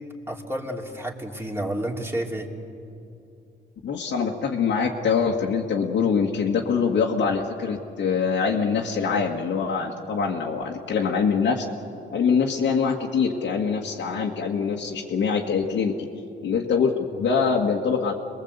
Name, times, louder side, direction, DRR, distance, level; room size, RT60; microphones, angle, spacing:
voice 1, 0.3-2.5, right 1 dB, 10° right, 0 dB, 3.0 m, -30 dB
voice 2, 3.8-11.7 12.1-16.1 16.4-18.1, left 5 dB, 65° left, -2 dB, 1.9 m, -24 dB
26.5 x 21.0 x 8.1 m, 2.7 s
cardioid pair, 90°, 20 cm